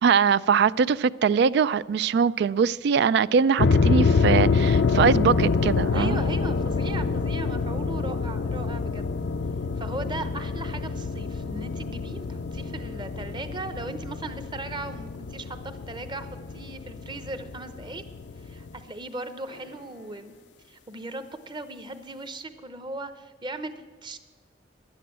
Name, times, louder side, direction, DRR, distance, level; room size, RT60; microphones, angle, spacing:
voice 1, 0.0-6.2, right 6 dB, 65° right, 0.3 m, -22 dB
sound 1, 3.6-18.8, left 4 dB, 70° left, 0.5 m, -26 dB
voice 2, 5.9-9.2 9.8-18.0 18.4-20.3 20.7-23.7 24.0-24.2, right 2 dB, 25° right, 0.8 m, -38 dB
11.0 x 9.0 x 7.4 m
head